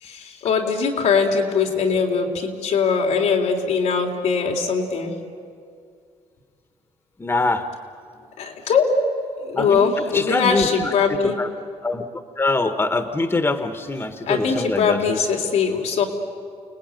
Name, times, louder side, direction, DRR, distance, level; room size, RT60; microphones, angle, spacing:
voice 1, 0.0-5.1 8.4-9.0 9.4-11.3 14.2-16.0, left 5 dB, 90° left, 0 dB, 3.6 m, -21 dB
voice 2, 7.2-7.6 9.6-9.9 10.1-10.9 11.4-11.5 11.8-12.0 12.4-15.2, left 2 dB, 20° left, 9 dB, 1.4 m, -23 dB
29.5 x 19.5 x 9.3 m, 2.2 s
cardioid pair, 105°, 12 cm